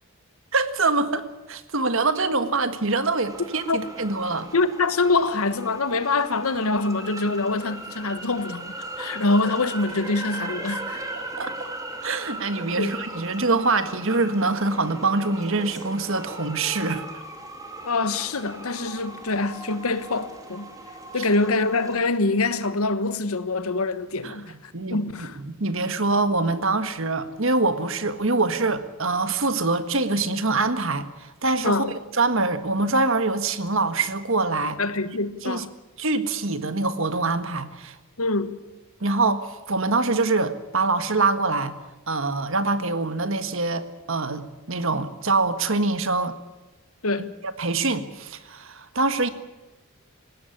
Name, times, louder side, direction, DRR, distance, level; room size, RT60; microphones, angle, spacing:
voice 1, 0.5-4.5 11.4-11.7 12.0-17.0 21.2-21.3 24.2-24.3 24.7-25.0 25.4-31.9 32.1-34.8 35.4-35.6 36.0-37.9 39.0-41.7 42.1-46.4 47.4-49.3, right 3 dB, 60° right, 1.6 m, -24 dB
sound 1, 3.2-22.0, right 2 dB, 15° right, 2.8 m, -38 dB
voice 2, 4.5-11.0 12.7-13.0 17.8-20.7 21.1-25.4 31.6-31.9 34.8-35.7 38.2-38.6 47.0-47.3, left 3 dB, 75° left, 1.3 m, -25 dB
19.5 x 17.0 x 9.8 m
head